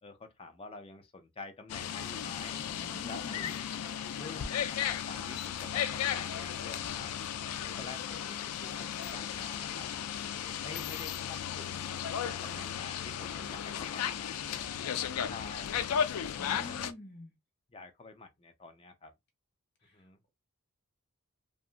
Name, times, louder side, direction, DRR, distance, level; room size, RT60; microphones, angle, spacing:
voice 1, 0.0-2.6 3.0-3.6 4.1-7.1 7.8-9.9 10.6-11.9 12.2-14.4 15.2-16.0 16.3-16.9 17.7-19.1 19.9-20.2, left 3 dB, 25° left, 0.5 m, -48 dB
sound 1, 1.7-16.9, left 9 dB, 90° left, 0.4 m, -35 dB
voice 2, 2.7-3.5 12.4-12.6 16.4-17.3 19.8-20.0, left 1 dB, 50° left, 1.2 m, -47 dB
2.8 x 2.4 x 2.4 m
head